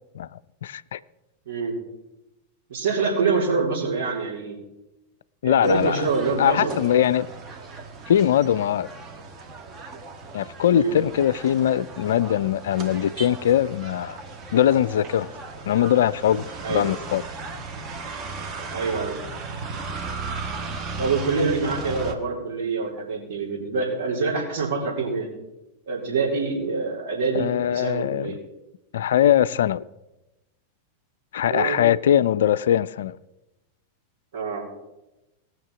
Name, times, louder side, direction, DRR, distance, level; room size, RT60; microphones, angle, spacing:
voice 1, 0.6-1.0 5.4-6.0 6.4-7.3 8.1-8.9 10.3-14.2 14.5-15.3 15.7-16.4 16.7-17.2 27.3-28.3 28.9-29.8 31.3-33.1, left 10 dB, 60° left, 0.3 m, -21 dB
voice 2, 1.5-1.8 2.7-4.6 5.4-6.8 10.7-11.0 16.6-16.9 18.7-19.2 21.0-25.3 25.9-28.4 31.5-31.8 34.3-34.6, right 4 dB, 55° right, 4.0 m, -25 dB
sound 1, 5.6-22.1, right 4 dB, 30° right, 1.4 m, -36 dB
18.5 x 6.4 x 5.9 m
figure-of-eight pair, 90°, 0 cm